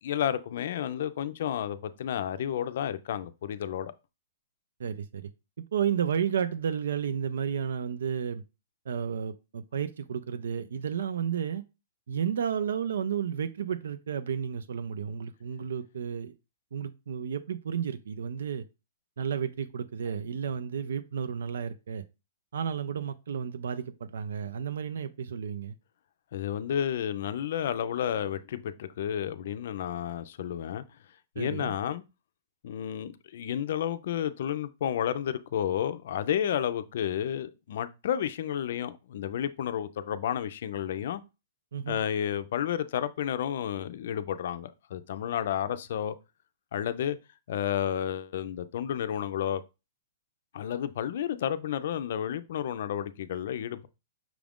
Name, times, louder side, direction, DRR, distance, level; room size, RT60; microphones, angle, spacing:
voice 1, 0.0-3.9 26.3-30.8 31.4-32.0 32.6-41.2 41.9-46.2 46.7-47.2 47.5-49.6 50.5-53.9, left 9 dB, 55° left, 0.4 m, -31 dB
voice 2, 4.8-5.3 5.7-8.4 8.9-11.6 12.1-16.3 16.7-18.6 19.2-22.0 22.5-25.7 31.4-31.7 41.7-42.0, right 8 dB, 80° right, 0.4 m, -32 dB
6.0 x 2.5 x 3.5 m
hypercardioid pair, 170°, 0 cm